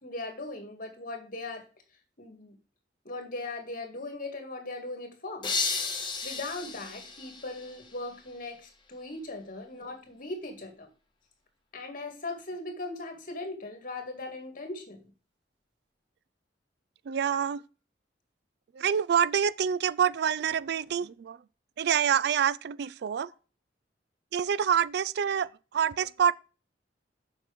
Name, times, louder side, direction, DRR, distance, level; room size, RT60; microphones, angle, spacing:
voice 1, 0.0-1.7 2.2-2.6 3.0-5.5 6.0-10.9 11.7-15.1, left 2 dB, 50° left, 2.2 m, -39 dB
sound 1, 5.4-8.2, left 4 dB, 25° left, 1.6 m, -34 dB
voice 2, 17.1-17.6 18.7-21.4 21.8-23.3 24.3-26.3, right 8 dB, 65° right, 0.4 m, -27 dB
7.3 x 5.9 x 5.2 m
head